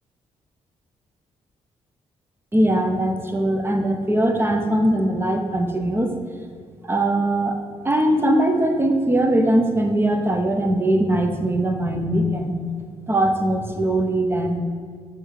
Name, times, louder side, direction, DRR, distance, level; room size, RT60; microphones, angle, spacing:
voice 1, 2.5-6.1 6.8-7.6 7.8-12.6 13.1-14.6, right 1 dB, 20° right, 4 dB, 0.8 m, -21 dB
6.6 x 3.3 x 4.8 m, 2.1 s
cardioid pair, 80°, 13 cm